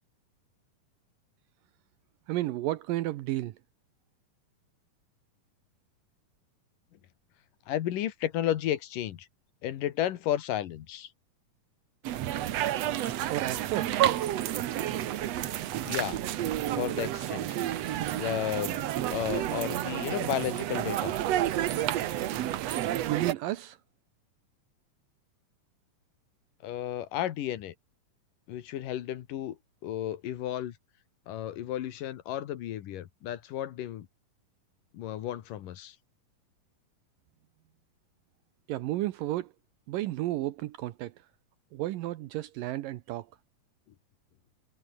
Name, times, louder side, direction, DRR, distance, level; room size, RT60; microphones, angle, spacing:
voice 1, 2.3-3.6 13.3-14.0 23.1-23.8 38.7-39.5 39.9-41.1 41.7-43.3, right 15 dB, 80° right, 2.5 m, -32 dB
voice 2, 7.7-9.3 9.6-11.1 15.9-16.2 16.8-17.5 17.9-21.1 26.6-27.7 28.5-30.8 31.3-34.1 34.9-36.0, left 12 dB, 75° left, 2.9 m, -33 dB
sound 1, 12.0-23.3, right 12 dB, 65° right, 1.8 m, -30 dB
omnidirectional pair, 4.0 m